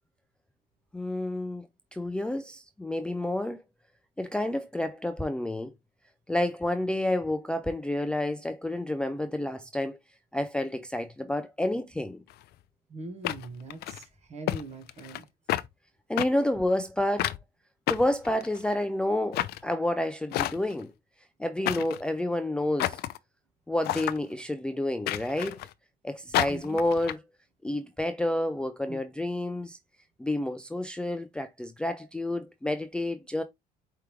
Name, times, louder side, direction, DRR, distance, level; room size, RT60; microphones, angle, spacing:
voice 1, 0.9-3.6 4.2-5.7 6.3-10.0 10.3-12.2 16.1-17.4 17.9-20.9 21.4-23.0 23.7-25.6 26.0-27.2 27.6-29.8 30.2-33.4, left 1 dB, 5° left, 0.4 m, -29 dB
sound 1, 12.3-12.4 13.2-14.0 14.5-14.6 14.9-15.2 15.5-15.7 16.2-16.3 17.2-17.4 17.9-18.7 19.3-19.6 20.3-20.8 21.6-22.0 22.8-23.2 23.8-24.2 25.1-25.7 26.3-27.1, left 14 dB, 75° left, 0.4 m, -30 dB
voice 2, 12.9-15.3 26.5-26.8 28.9-29.0, right 2 dB, 40° right, 1.2 m, -42 dB
4.8 x 3.4 x 3.1 m
cardioid pair, 110°, 17 cm